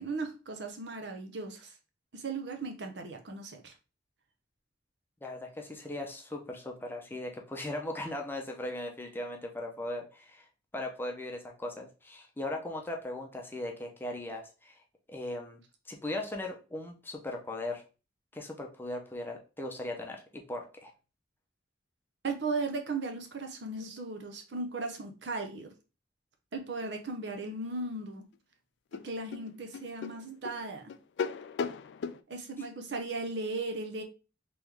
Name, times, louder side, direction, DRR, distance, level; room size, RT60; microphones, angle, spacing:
voice 1, 0.0-1.7 2.1-3.7 22.2-25.7 26.5-28.3 29.0-30.9 32.3-34.0, right 3 dB, 65° right, 5 dB, 0.8 m, -37 dB
voice 2, 5.2-10.4 10.7-14.7 15.1-15.6 15.9-17.8 18.3-20.9, left 1 dB, 10° left, 1 dB, 0.6 m, -38 dB
sound 1, 28.3-28.4 28.9-32.2, left 6 dB, 70° left, 0.3 m, -37 dB
3.4 x 3.0 x 3.4 m, 0.33 s
head